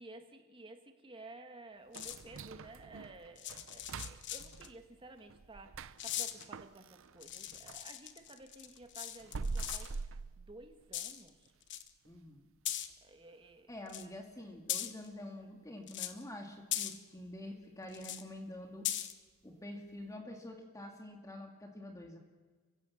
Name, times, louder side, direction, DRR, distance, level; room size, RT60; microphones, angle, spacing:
voice 1, 0.0-11.5 13.0-13.7, right 2 dB, 25° right, 5 dB, 2.0 m, -54 dB
sound 1, 1.9-2.4 3.4-4.7 6.0-6.4 7.2-9.9 10.9-11.3 11.6-11.9 12.6-12.9 13.9-14.1 14.7-15.0 15.9-16.2 16.7-17.0 17.9-18.2 18.8-19.1, left 11 dB, 55° left, 1.2 m, -39 dB
sound 2, 1.9-7.9 8.3-11.1 11.5-11.6 12.1-12.2 12.7-13.0 13.3-13.4 14.0-14.1, right 4 dB, 65° right, 0.6 m, -45 dB
voice 2, 12.1-12.4 13.7-18.9 19.4-22.2, left 1 dB, 15° left, 2 dB, 2.1 m, -47 dB
29.5 x 16.0 x 7.3 m, 1.4 s
head